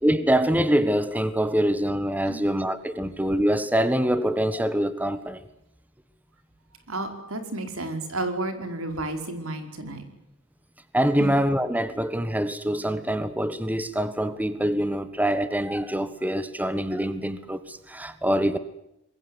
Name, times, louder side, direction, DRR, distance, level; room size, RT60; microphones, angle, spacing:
voice 1, 0.0-5.4 10.9-18.6, equal, 10° right, 1.4 m, -24 dB
voice 2, 6.9-10.1 11.2-11.4, right 2 dB, 80° right, 5.1 m, -32 dB
27.0 x 22.0 x 8.1 m
head